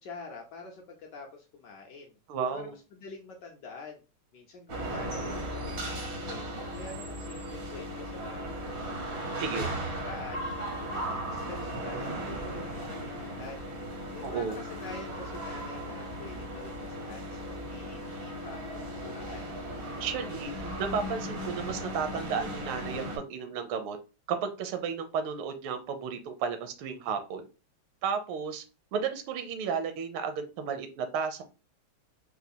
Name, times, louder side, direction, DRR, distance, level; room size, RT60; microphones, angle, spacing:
voice 1, 0.0-2.2 2.5-4.0 4.3-8.9 9.5-10.5 10.8-13.7 14.1-18.7 19.0-19.5, left 4 dB, 70° left, 1 dB, 1.0 m, -46 dB
voice 2, 2.3-2.7 9.4-9.7 14.2-14.6 20.0-20.5 20.8-24.0 24.3-27.4 28.0-28.6 28.9-31.4, right 6 dB, 80° right, 8 dB, 1.4 m, -33 dB
sound 1, 4.7-23.2, right 1 dB, 65° right, 0.6 m, -37 dB
sound 2, 7.6-20.4, equal, 50° left, 0.4 m, -53 dB
4.1 x 2.3 x 2.6 m, 0.31 s
omnidirectional pair, 2.3 m